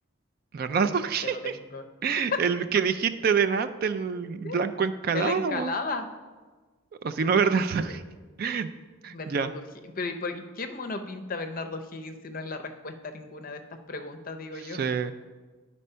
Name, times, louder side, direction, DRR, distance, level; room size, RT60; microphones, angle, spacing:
voice 1, 0.5-1.6 2.0-5.7 7.0-8.0 8.4-8.7 9.0-9.5 14.6-15.1, right 6 dB, 45° right, 10 dB, 0.3 m, -26 dB
voice 2, 1.2-1.8 2.3-2.4 4.4-4.7 5.1-6.1 7.1-7.4 7.8-8.0 9.1-9.6 10.0-13.6 13.9-14.8, left 3 dB, 40° left, 7 dB, 0.5 m, -35 dB
9.9 x 4.2 x 5.5 m, 1.3 s
head